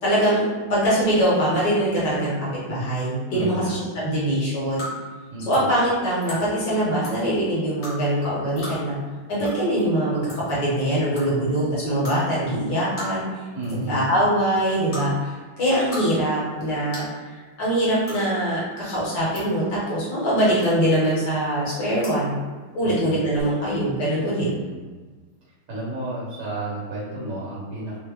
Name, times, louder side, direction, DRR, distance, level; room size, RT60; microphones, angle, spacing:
voice 1, 0.0-4.9 5.5-9.0 9.3-13.2 13.7-17.1 17.6-22.4 22.7-24.5, right 1 dB, 60° left, -7 dB, 1.4 m, -23 dB
voice 2, 3.3-4.0 5.3-5.7 13.5-14.0 22.8-23.2 23.6-23.8 24.4-25.0 25.7-28.0, right 1 dB, 40° right, -7 dB, 1.3 m, -32 dB
sound 1, 4.8-4.9 5.5-5.6 6.2-6.4 7.0-7.2 7.8-7.9 8.6-8.7 9.4-9.5 9.8-9.9 10.3-10.5 11.1-11.2 12.0-12.2 13.0-13.3 13.6-13.9 14.9-15.0 15.7-16.0 16.3-16.4 16.9-17.1 18.0-18.2 19.0-19.4 20.6-20.9 22.0-22.2 23.3-23.4, left 1 dB, 40° left, 1.1 m, -35 dB
3.4 x 2.1 x 3.3 m, 1.4 s
omnidirectional pair, 2.3 m